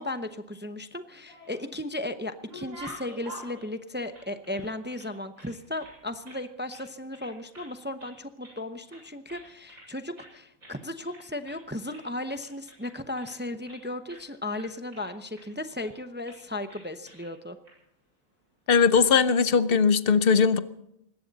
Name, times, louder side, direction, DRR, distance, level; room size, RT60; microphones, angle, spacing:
voice 1, 0.0-17.6, left 1 dB, 10° right, 9 dB, 0.5 m, -36 dB
sound 1, 1.0-1.8 2.2-5.1 5.4-6.4 6.7-6.9 7.1-7.7 8.0-8.6 8.9-9.9 10.2-10.3 10.6-10.8 11.0-11.6 11.9-13.8 14.1-14.2 14.5-15.4 15.8-16.0 16.2-16.4 16.7-17.3 17.6-17.7 18.7-19.0, right 1 dB, 90° right, 8.3 m, -48 dB
voice 2, 18.7-20.6, left 6 dB, 50° left, 14 dB, 0.9 m, -20 dB
20.5 x 17.0 x 4.1 m, 0.82 s
omnidirectional pair, 1.4 m